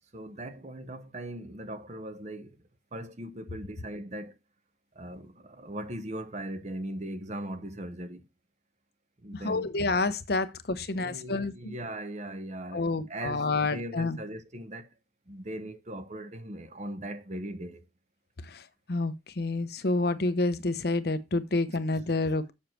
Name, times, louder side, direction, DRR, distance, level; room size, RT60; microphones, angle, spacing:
voice 1, 0.1-2.6 2.9-4.4 4.9-8.2 9.2-9.7 10.9-14.9 15.3-17.8, right 1 dB, 40° right, 1.0 m, -39 dB
voice 2, 9.3-11.7 12.7-14.2 18.4-22.5, left 3 dB, 60° left, 0.8 m, -29 dB
7.1 x 6.5 x 4.4 m
head